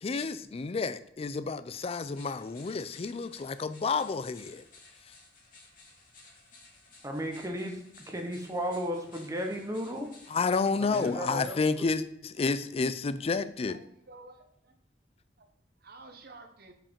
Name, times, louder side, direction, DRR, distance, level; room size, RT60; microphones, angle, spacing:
voice 1, 0.0-4.6 10.3-13.8, left 4 dB, 35° left, 0.4 m, -30 dB
sound 1, 2.0-11.1, left 3 dB, 50° left, 2.2 m, -56 dB
voice 2, 7.0-10.1 10.8-11.8, equal, 20° right, 0.9 m, -35 dB
voice 3, 13.7-14.7 15.4-15.5 15.8-16.7, right 3 dB, 60° right, 0.9 m, -51 dB
5.7 x 4.8 x 5.1 m
head